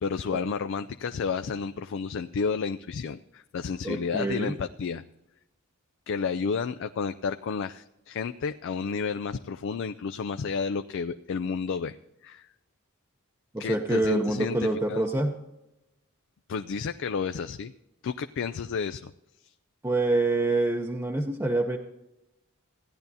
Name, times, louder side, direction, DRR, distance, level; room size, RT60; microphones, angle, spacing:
voice 1, 0.0-5.0 6.1-12.0 12.2-12.5 13.6-15.1 16.5-17.7 18.0-19.1, left 5 dB, 60° left, 9 dB, 0.4 m, -31 dB
voice 2, 3.8-4.5 13.5-15.4 19.8-21.8, right 2 dB, 15° right, 1 dB, 0.7 m, -26 dB
16.5 x 10.5 x 2.7 m, 0.90 s
head